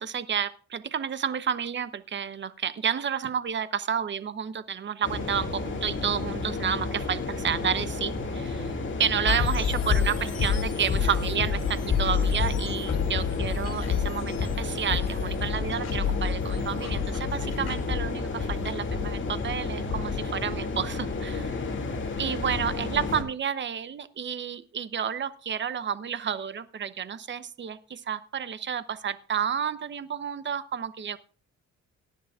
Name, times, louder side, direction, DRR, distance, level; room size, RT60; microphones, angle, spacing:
voice 1, 0.0-8.7 9.0-21.5 22.2-31.2, right 8 dB, 40° right, 14 dB, 0.8 m, -30 dB
sound 1, 5.0-23.2, left 3 dB, 40° left, 2.4 m, -32 dB
sound 2, 9.3-20.2, left 7 dB, 55° left, 2.9 m, -29 dB
18.0 x 10.5 x 2.4 m, 0.38 s
cardioid pair, 90°, 30 cm